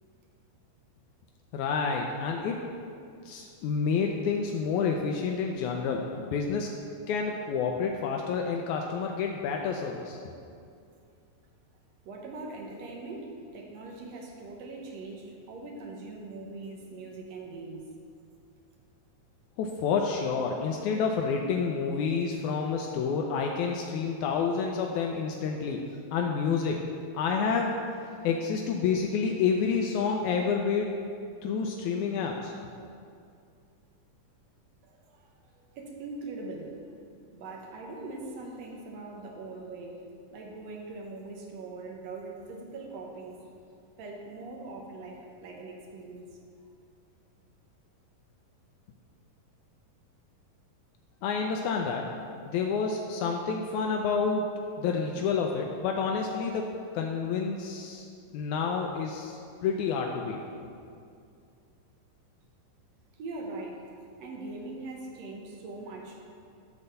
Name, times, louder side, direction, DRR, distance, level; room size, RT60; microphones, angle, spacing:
voice 1, 1.5-2.6 3.2-6.7 7.1-10.2 19.6-25.8 26.1-26.8 27.1-27.7 28.2-31.0 31.4-32.5 51.2-52.1 52.5-54.5 54.8-58.1 58.3-60.4, left 5 dB, 85° left, 1 dB, 1.7 m, -29 dB
voice 2, 12.0-17.9 34.8-36.9 37.3-40.0 40.3-43.4 44.0-46.4 63.1-63.8 64.2-66.2, right 3 dB, 65° right, 0 dB, 1.8 m, -41 dB
12.0 x 4.1 x 6.6 m, 2.4 s
omnidirectional pair, 4.0 m